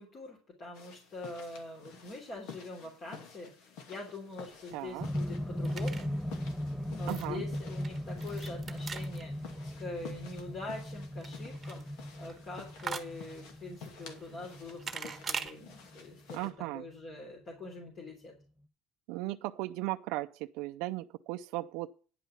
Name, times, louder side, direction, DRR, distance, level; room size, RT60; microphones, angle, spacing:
voice 1, 0.0-6.1 6.9-16.4 16.7-18.3, left 2 dB, 30° left, 3.2 m, -44 dB
sound 1, 0.7-16.5, left 6 dB, 60° left, 2.5 m, -52 dB
sound 2, 4.3-15.5, right 6 dB, 20° right, 1.4 m, -45 dB
voice 2, 4.7-5.1 7.1-7.4 16.3-16.8 19.1-21.9, right 18 dB, 70° right, 0.5 m, -36 dB
sound 3, 5.0-17.1 18.1-18.2, equal, ahead, 0.6 m, -38 dB
10.5 x 5.4 x 7.1 m
cardioid pair, 145°, 0 cm